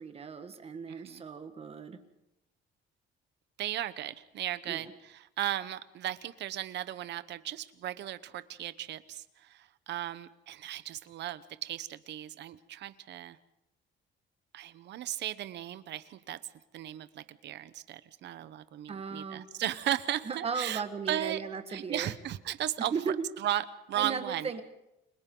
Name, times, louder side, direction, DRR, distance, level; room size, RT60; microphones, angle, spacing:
voice 1, 0.0-2.0 4.7-4.8 18.9-19.5 20.2-22.1 22.8-23.3 23.9-24.6, right 5 dB, 30° right, 8 dB, 1.6 m, -36 dB
voice 2, 0.9-1.2 3.6-13.4 14.5-16.4 16.7-20.8 21.1-21.4 21.7-22.9 23.4-24.5, right 12 dB, 60° right, 14 dB, 0.9 m, -36 dB
30.0 x 22.5 x 3.9 m, 0.89 s
cardioid pair, 160°, 20 cm